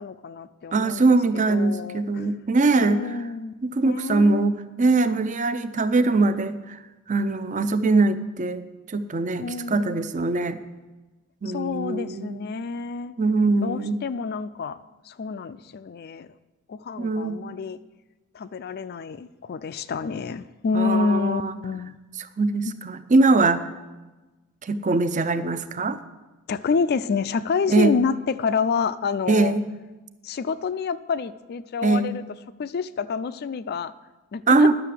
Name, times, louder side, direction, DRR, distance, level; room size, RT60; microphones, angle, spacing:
voice 1, 0.0-2.3 2.8-3.5 3.8-4.5 9.4-10.1 11.5-13.1 13.6-14.8 15.0-16.3 16.7-17.8 18.3-22.0 22.6-22.7 26.5-29.6 30.2-32.2 32.6-33.9 34.3-34.7, left 5 dB, 45° left, 14 dB, 0.3 m, -28 dB
voice 2, 0.7-3.0 3.6-6.8 7.1-10.6 11.4-12.5 13.2-14.0 17.0-17.4 20.7-21.6 22.4-23.6 24.6-26.0 27.7-28.0 29.3-29.6 31.8-32.1 34.5-34.7, right 3 dB, 35° right, 12 dB, 0.5 m, -22 dB
11.0 x 6.6 x 7.4 m, 1.2 s
head